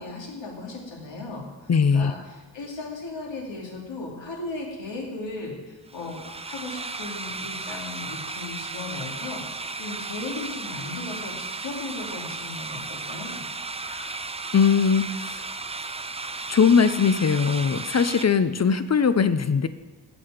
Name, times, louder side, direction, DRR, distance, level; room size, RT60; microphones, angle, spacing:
voice 1, 0.0-13.4, left 3 dB, 85° left, -2 dB, 2.7 m, -36 dB
voice 2, 1.7-2.1 13.9-14.0 14.5-15.4 16.5-19.7, left 6 dB, 40° left, 12 dB, 0.5 m, -20 dB
sound 1, 5.9-18.3, right 3 dB, 15° right, 0.4 m, -35 dB
14.5 x 8.4 x 5.0 m, 1.2 s
wide cardioid pair, 145°, 43 cm